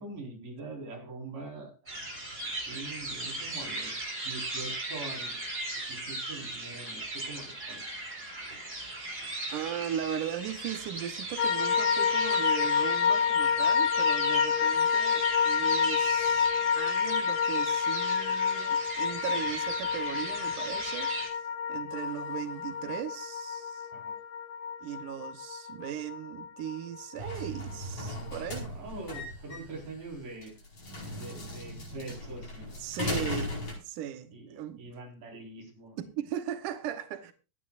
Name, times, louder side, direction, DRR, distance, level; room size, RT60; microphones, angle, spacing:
voice 1, 0.0-2.3 2.7-3.9 4.2-5.4 5.9-7.8 23.9-24.1 28.7-30.5 31.1-32.8 34.3-36.0, right 3 dB, 50° right, 5.8 m, -43 dB
sound 1, 1.9-21.3, right 2 dB, 15° right, 4.1 m, -38 dB
voice 2, 9.5-16.5 16.8-23.9 24.8-28.7 32.8-33.6 33.8-34.9 36.2-37.3, right 10 dB, 75° right, 1.9 m, -38 dB
sound 2, 11.4-27.7 28.0-28.1, left 6 dB, 75° left, 2.6 m, -28 dB
sound 3, 27.2-33.7, left 1 dB, 35° left, 5.6 m, -37 dB
25.0 x 9.2 x 2.5 m
omnidirectional pair, 4.9 m